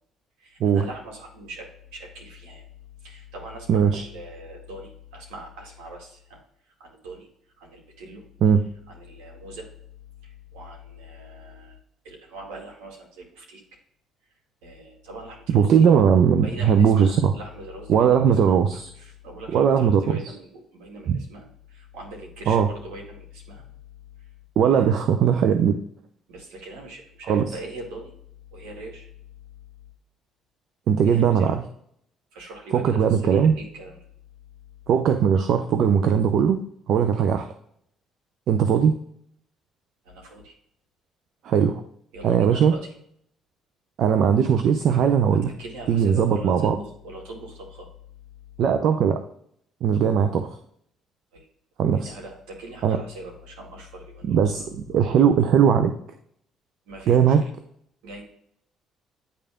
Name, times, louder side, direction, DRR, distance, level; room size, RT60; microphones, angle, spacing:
voice 1, 0.4-2.7 3.0-6.4 6.7-7.3 7.6-8.2 8.9-9.7 10.2-11.8 12.0-13.6 14.6-15.8 16.4-18.6 19.0-23.7 24.2-24.3 24.6-25.0 26.3-28.1 28.5-29.1 31.0-31.6 32.3-34.1 40.0-40.6 42.1-42.9 45.6-47.9 51.3-51.5 51.9-54.4 56.9-57.5 58.0-58.2, right 1 dB, 80° right, -1 dB, 2.2 m, -41 dB
voice 2, 3.7-4.0 8.4-8.6 15.5-17.3 17.9-18.9 19.5-20.2 21.1-21.2 22.5-22.7 24.6-25.8 27.3-27.4 30.9-31.6 32.7-33.5 34.9-36.6 36.9-37.5 38.5-38.9 41.4-41.8 42.2-42.8 44.0-45.5 45.9-46.8 48.6-49.2 49.8-50.6 51.8-52.1 52.8-53.0 54.2-55.9 57.1-57.4, right 7 dB, 65° right, 8 dB, 0.5 m, -19 dB
9.8 x 3.5 x 3.6 m, 0.68 s
supercardioid pair, 70°, 0 cm